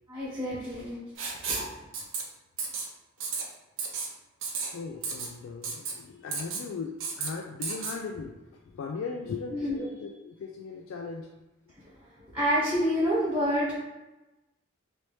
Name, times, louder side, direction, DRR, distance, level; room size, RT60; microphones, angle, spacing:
voice 1, 0.1-1.0 1.5-1.7 9.5-9.9 12.3-13.8, equal, 10° right, -8 dB, 0.9 m, -28 dB
Writing, 1.2-1.7 1.9-2.2 2.6-2.9 3.2-3.4 3.8-4.1 4.4-4.7 5.0-5.3 5.6-5.9 6.3-6.6 7.0-7.3 7.6-7.9, right 5 dB, 75° right, 0.6 m, -32 dB
voice 2, 4.7-11.3, left 4 dB, 80° left, 1 dB, 0.3 m, -38 dB
3.2 x 2.8 x 3.0 m, 1.0 s
head